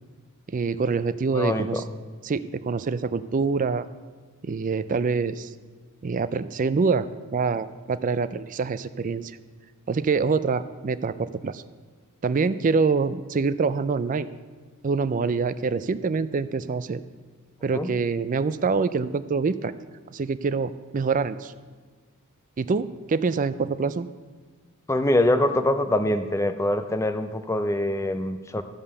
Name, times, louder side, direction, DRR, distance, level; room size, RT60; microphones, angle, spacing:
voice 1, 0.5-1.8 2.2-3.9 4.4-5.5 6.0-9.4 9.9-11.6 12.2-14.3 14.8-17.0 17.6-19.7 20.1-21.5 22.6-24.1, right 4 dB, 35° right, 14 dB, 0.4 m, -25 dB
voice 2, 1.3-1.8 17.7-17.9 24.9-28.6, left 1 dB, 15° left, 9 dB, 0.5 m, -24 dB
13.0 x 5.4 x 6.8 m, 1.4 s
head